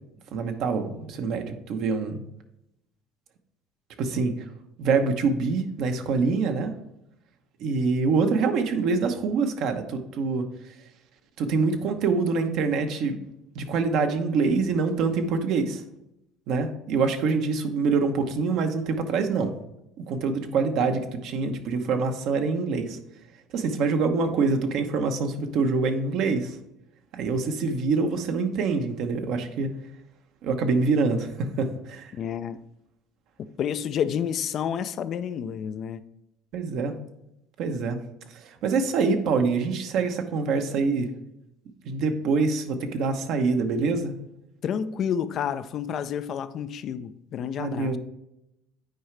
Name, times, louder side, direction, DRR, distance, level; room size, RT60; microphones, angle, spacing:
voice 1, 0.3-2.2 4.0-4.3 4.8-6.7 7.6-10.5 11.4-13.2 13.5-15.8 16.5-19.5 20.0-23.0 23.5-26.6 27.1-29.7 30.4-32.1 36.5-36.9 37.6-38.0 38.3-41.1 41.8-44.1 47.6-48.0, right 4 dB, 60° right, 1.0 m, -25 dB
voice 2, 32.1-32.6 33.4-36.0 44.6-48.0, left 8 dB, 50° left, 0.5 m, -30 dB
9.0 x 4.7 x 3.3 m
hypercardioid pair, 75°, 0 cm